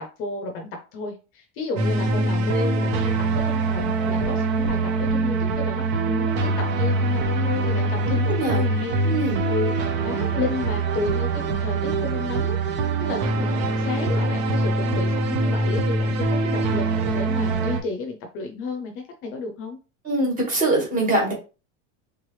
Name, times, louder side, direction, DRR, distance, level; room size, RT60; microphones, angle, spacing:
voice 1, 0.0-9.0 9.5-19.8, left 3 dB, 35° left, 4 dB, 0.6 m, -32 dB
sound 1, 1.8-17.8, right 2 dB, 60° right, 1.0 m, -23 dB
voice 2, 8.0-8.6 9.0-9.5 20.0-21.3, right 2 dB, 25° right, -1 dB, 1.6 m, -23 dB
3.4 x 3.2 x 3.1 m, 0.32 s
supercardioid pair, 165°, 35 cm